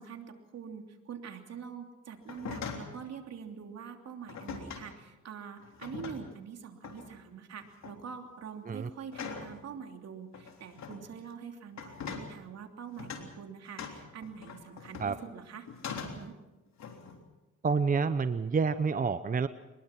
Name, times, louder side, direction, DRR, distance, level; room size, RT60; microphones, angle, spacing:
voice 1, 0.0-16.4, right 7 dB, 60° right, 4 dB, 3.1 m, -45 dB
sound 1, 2.2-3.0 4.3-4.9 5.6-6.4 6.8-7.1 7.6-8.0 9.1-9.6 10.3-11.0 11.7-12.3 13.0-13.3 13.8-15.3 15.7-16.3 16.8-17.2, left 6 dB, 65° left, 3.5 m, -42 dB
voice 2, 17.6-19.5, right 5 dB, 30° right, 12 dB, 0.8 m, -28 dB
24.0 x 21.0 x 6.0 m, 1.0 s
cardioid pair, 90°, 30 cm